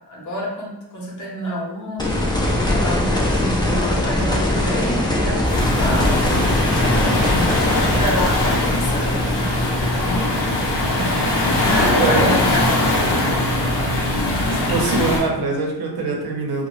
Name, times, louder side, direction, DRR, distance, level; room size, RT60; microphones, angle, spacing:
voice 1, 0.1-6.2 6.7-9.5 10.7-13.6, equal, 50° left, -3 dB, 0.8 m, -29 dB
sound 1, 2.0-12.9 15.2-15.3, left 1 dB, 10° left, 0.3 m, -22 dB
Waves surf, 5.5-15.2, left 1 dB, 90° left, 0.7 m, -20 dB
voice 2, 10.5-12.3 14.5-16.7, right 3 dB, 70° right, 0 dB, 0.7 m, -25 dB
2.7 x 2.1 x 2.9 m, 0.96 s
wide cardioid pair, 160°, 40 cm